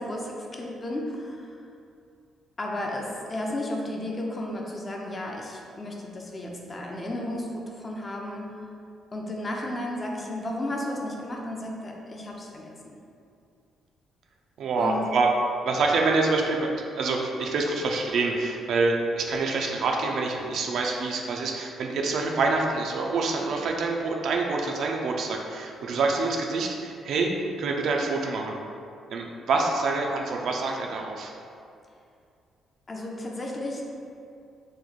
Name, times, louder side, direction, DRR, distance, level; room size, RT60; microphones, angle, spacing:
voice 1, 0.0-1.6 2.6-8.6 9.1-13.0 14.8-15.1 32.9-33.9, left 1 dB, 30° left, -1 dB, 0.5 m, -33 dB
voice 2, 14.6-15.3 15.6-27.3 27.6-28.6 29.1-31.3, right 3 dB, 70° right, 1 dB, 0.4 m, -26 dB
3.0 x 2.1 x 3.9 m, 2.5 s
cardioid pair, 90°, 0 cm